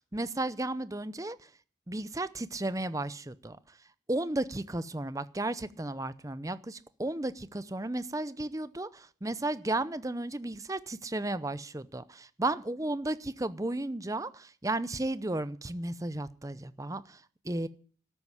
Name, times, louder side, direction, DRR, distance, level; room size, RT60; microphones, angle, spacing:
voice 1, 0.0-1.5 1.9-3.8 4.1-17.7, right 2 dB, 15° right, 15 dB, 0.6 m, -34 dB
13.0 x 9.1 x 9.8 m, 0.43 s
head